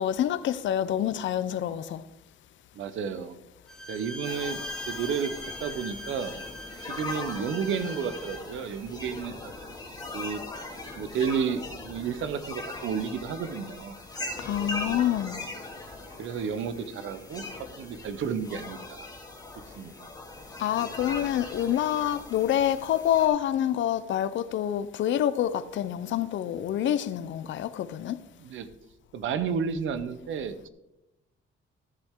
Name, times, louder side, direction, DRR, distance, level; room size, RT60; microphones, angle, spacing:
voice 1, 0.0-2.0 14.4-15.4 20.6-28.2, left 11 dB, 65° left, 0.6 m, -27 dB
voice 2, 2.7-3.4 3.9-4.6 4.9-5.3 5.6-6.3 6.8-9.5 10.1-10.4 11.0-14.0 16.2-17.4 17.8-19.1 19.8-19.9 28.4-28.7 29.1-30.7, right 6 dB, 75° right, 0.9 m, -31 dB
Bowed string instrument, 3.7-8.5, left 1 dB, 5° left, 0.9 m, -40 dB
sound 1, 4.2-23.3, left 2 dB, 20° left, 2.2 m, -40 dB
13.5 x 7.4 x 3.7 m
cardioid pair, 140°, 21 cm